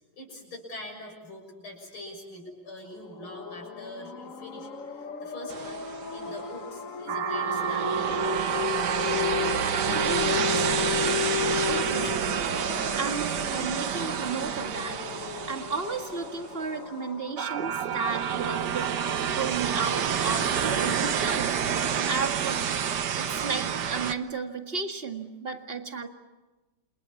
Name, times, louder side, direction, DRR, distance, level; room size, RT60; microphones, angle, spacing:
voice 1, 0.1-5.8 6.1-8.4 12.0-12.3 21.2-21.3, left 1 dB, 80° left, 0 dB, 7.7 m, -43 dB
sound 1, 2.9-17.7, left 7 dB, 45° left, 1.6 m, -34 dB
sound 2, 5.5-6.3 7.1-16.6 17.4-24.1, right 8 dB, 60° right, 1.6 m, -28 dB
voice 2, 9.9-10.5 11.7-12.2 12.9-15.0 15.5-18.9 19.4-22.6 23.2-26.1, right 5 dB, 30° right, 6 dB, 2.0 m, -33 dB
29.5 x 28.5 x 7.2 m, 1.1 s
omnidirectional pair, 2.3 m